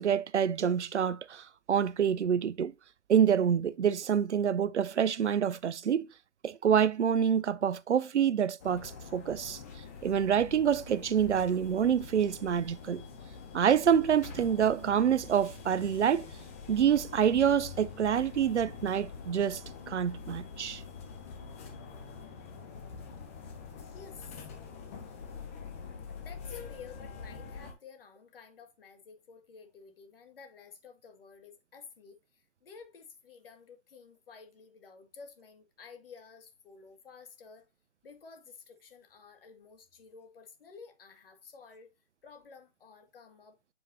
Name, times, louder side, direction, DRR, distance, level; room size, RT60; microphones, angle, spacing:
voice 1, 0.0-2.7 3.1-6.1 6.4-9.6 10.0-13.0 13.5-16.3 16.7-19.6 19.9-20.8, right 8 dB, 70° right, 0.6 m, -27 dB
sound 1, 8.6-27.7, left 5 dB, 10° left, 0.6 m, -45 dB
voice 2, 23.8-24.4 26.2-37.6 38.0-41.9 42.2-43.6, left 5 dB, 50° left, 2.2 m, -52 dB
7.9 x 4.8 x 2.8 m
figure-of-eight pair, 145°, 36 cm